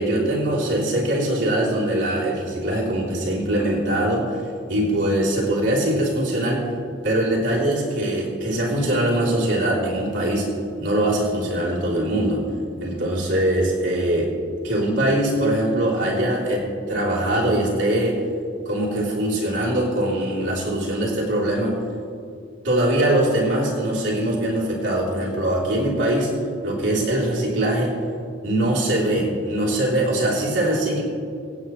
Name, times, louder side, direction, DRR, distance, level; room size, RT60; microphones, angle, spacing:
voice 1, 0.0-4.4 4.7-6.7 7.0-10.5 10.8-12.4 12.8-14.3 14.6-18.2 18.6-21.7 22.6-26.3 26.6-27.9 28.4-31.0, right 1 dB, 75° right, -5 dB, 3.5 m, -22 dB
25.0 x 9.3 x 3.2 m, 2.3 s
head